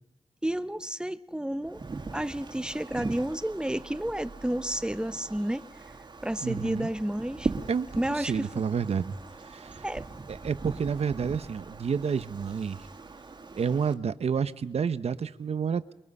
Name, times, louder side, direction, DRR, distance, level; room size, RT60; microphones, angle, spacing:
voice 1, 0.4-1.8 2.1-5.6 6.2-7.5 8.0-8.5 9.8-10.1, right 1 dB, 5° right, 13 dB, 0.9 m, -31 dB
Wind, 1.6-13.9, right 3 dB, 45° right, 2.3 m, -40 dB
voice 2, 6.4-6.9 7.7-9.2 9.4-9.8 10.3-12.8 13.6-15.9, right 6 dB, 70° right, 13 dB, 0.9 m, -30 dB
29.0 x 22.5 x 5.5 m, 0.91 s
cardioid pair, 75°, 11 cm